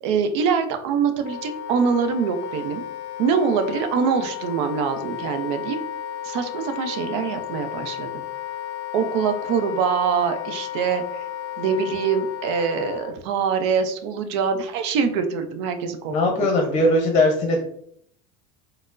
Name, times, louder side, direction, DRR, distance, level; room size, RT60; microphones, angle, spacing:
voice 1, 0.0-2.8 3.2-5.8 6.2-8.2 8.9-11.0 11.6-16.5, right 6 dB, 70° right, 8 dB, 0.5 m, -24 dB
Wind instrument woodwind instrument, 1.2-13.1, left 11 dB, 75° left, 0.4 m, -33 dB
voice 2, 16.1-17.6, left 1 dB, 30° left, 2 dB, 0.7 m, -19 dB
4.3 x 2.0 x 2.4 m, 0.67 s
supercardioid pair, 125°, 15 cm